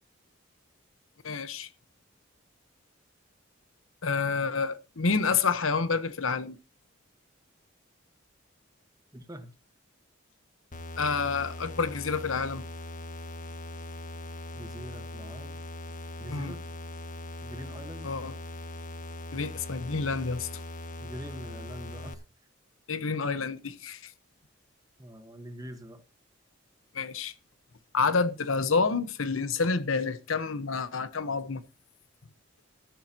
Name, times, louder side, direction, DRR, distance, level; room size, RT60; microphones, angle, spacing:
voice 1, 1.2-1.7 4.0-6.6 11.0-12.6 16.3-16.6 18.0-18.3 19.3-20.5 22.9-24.1 26.9-27.3 27.9-31.6, left 4 dB, 85° left, 1.1 m, -28 dB
voice 2, 9.1-9.5 14.5-15.6 16.2-16.6 17.4-18.1 21.0-22.2 25.0-26.0, equal, 20° right, 1.3 m, -43 dB
sound 1, 10.7-22.1, left 2 dB, 40° left, 1.1 m, -40 dB
14.0 x 11.5 x 2.9 m
head